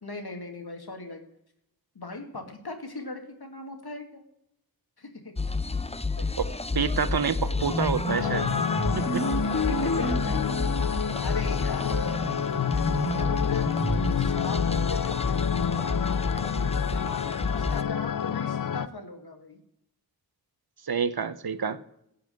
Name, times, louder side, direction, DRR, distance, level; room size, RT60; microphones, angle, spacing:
voice 1, 0.0-1.2 1.9-4.2 5.0-5.5 6.2-6.3 8.7-10.5 11.2-13.7 14.0-17.0 17.5-19.6, left 3 dB, 75° left, 4 dB, 2.3 m, -39 dB
sound 1, 5.4-17.8, left 3 dB, 15° left, 0.6 m, -31 dB
voice 2, 6.7-8.5 9.0-9.2 20.9-21.8, right 6 dB, 70° right, 14 dB, 0.9 m, -27 dB
sound 2, 7.5-14.4, left 1 dB, 35° left, 3.0 m, -31 dB
sound 3, 8.1-18.9, left 8 dB, 60° left, 0.5 m, -29 dB
16.0 x 5.7 x 9.1 m, 0.79 s
wide cardioid pair, 50°, 38 cm